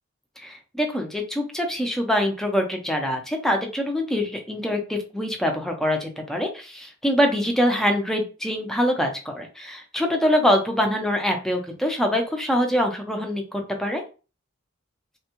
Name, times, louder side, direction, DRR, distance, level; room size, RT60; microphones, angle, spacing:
voice 1, 0.4-14.0, equal, ahead, 2 dB, 0.5 m, -24 dB
3.5 x 2.2 x 2.9 m, 0.34 s
head